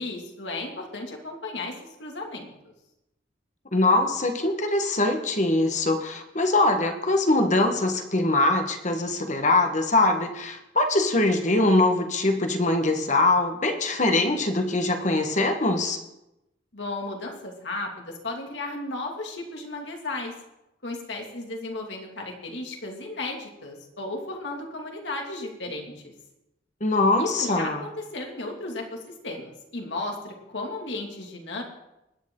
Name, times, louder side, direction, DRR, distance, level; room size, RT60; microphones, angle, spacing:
voice 1, 0.0-1.7 2.0-2.5 16.7-20.3 20.8-26.1 27.2-31.6, left 2 dB, 75° left, 1 dB, 2.6 m, -34 dB
voice 2, 3.7-16.0 26.8-27.8, left 2 dB, 40° left, 5 dB, 1.5 m, -22 dB
21.0 x 10.0 x 3.9 m, 0.91 s
head